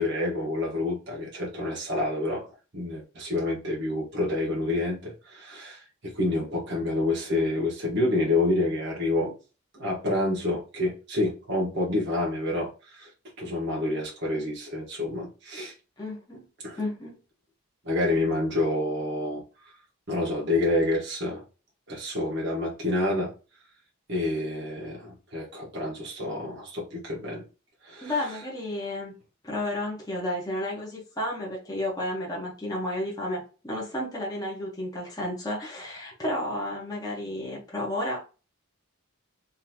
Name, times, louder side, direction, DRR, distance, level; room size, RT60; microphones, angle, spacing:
voice 1, 0.0-2.4 2.7-9.3 9.7-13.1 13.4-15.7 16.6-16.8 17.8-19.4 20.1-21.4 21.9-23.3 24.1-27.4 27.8-28.1, left 2 dB, 55° right, 1.4 m, -28 dB
voice 2, 16.0-16.4 16.8-17.2 28.0-29.1 29.4-38.2, left 1 dB, 15° left, 1.2 m, -32 dB
3.8 x 3.0 x 3.0 m
head